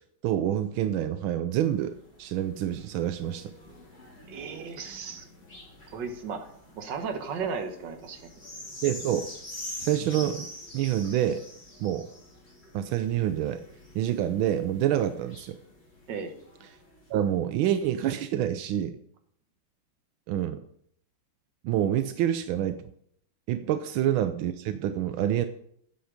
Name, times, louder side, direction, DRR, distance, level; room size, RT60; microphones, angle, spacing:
voice 1, 0.2-3.5 8.8-9.3 9.8-10.5 10.7-11.4 11.8-12.1 12.7-13.6 13.9-15.6 17.1-19.0 20.3-20.6 21.6-22.8 23.5-25.5, right 11 dB, 85° right, 10 dB, 1.4 m, -27 dB
sound 1, 1.5-17.4 18.0-18.1, left 1 dB, 30° left, 4.1 m, -46 dB
voice 2, 4.3-5.2 5.9-8.2 16.1-16.3 23.6-23.7, right 5 dB, 65° right, 6 dB, 1.8 m, -35 dB
10.0 x 7.8 x 5.0 m, 0.67 s
omnidirectional pair, 2.2 m